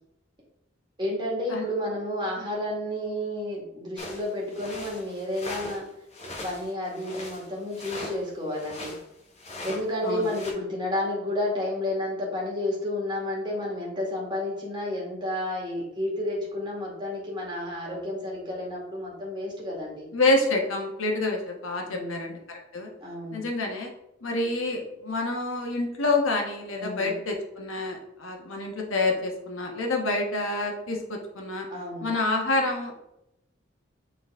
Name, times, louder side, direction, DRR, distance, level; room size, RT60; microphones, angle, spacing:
voice 1, 1.0-5.9 6.4-9.0 9.6-20.1 21.9-22.4 23.0-23.5 26.8-27.2 31.7-32.1, left 1 dB, 20° right, -4 dB, 1.9 m, -31 dB
sound 1, 4.0-5.8 6.1-9.0 9.4-9.8 10.2-10.5, left 1 dB, 30° left, 1.2 m, -39 dB
voice 2, 20.1-22.9 23.3-23.9 24.2-31.7 32.0-33.1, left 2 dB, 90° left, 2 dB, 1.3 m, -27 dB
7.2 x 4.1 x 3.6 m, 0.84 s
head